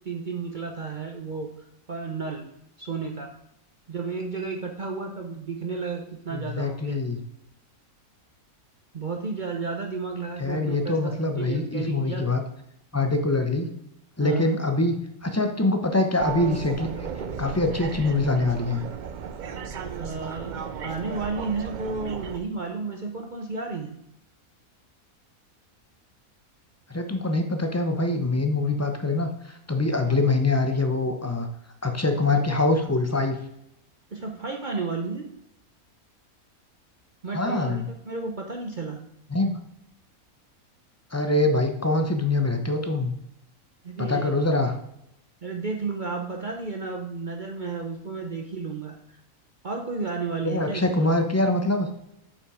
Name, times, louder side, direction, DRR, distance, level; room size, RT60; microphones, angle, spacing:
voice 1, 0.0-1.5 1.9-2.4 2.8-3.3 3.9-7.0 8.9-12.2 14.2-14.5 19.9-24.0 30.0-30.2 34.1-35.3 37.2-39.0 43.8-44.3 45.4-49.0 49.6-51.2, right 4 dB, 40° right, 2 dB, 0.8 m, -32 dB
voice 2, 6.3-7.2 10.4-12.4 12.9-13.7 14.2-17.1 17.4-18.8 26.9-31.5 31.8-33.4 37.3-37.9 39.3-39.6 41.1-43.1 44.0-44.8 50.4-51.9, left 2 dB, 20° left, 5 dB, 0.5 m, -24 dB
sound 1, 16.2-22.4, right 6 dB, 85° right, 0.4 m, -35 dB
7.6 x 5.7 x 4.9 m, 0.78 s
omnidirectional pair, 1.5 m